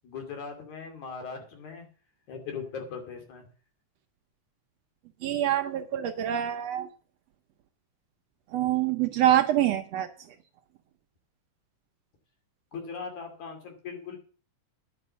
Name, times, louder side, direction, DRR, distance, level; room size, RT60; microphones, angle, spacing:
voice 1, 0.0-1.9 2.3-3.5 12.7-14.2, left 5 dB, 70° left, 4 dB, 3.9 m, -39 dB
voice 2, 5.2-6.9 8.5-10.1, right 12 dB, 70° right, 7 dB, 1.6 m, -25 dB
10.5 x 6.1 x 8.1 m, 0.39 s
omnidirectional pair, 3.4 m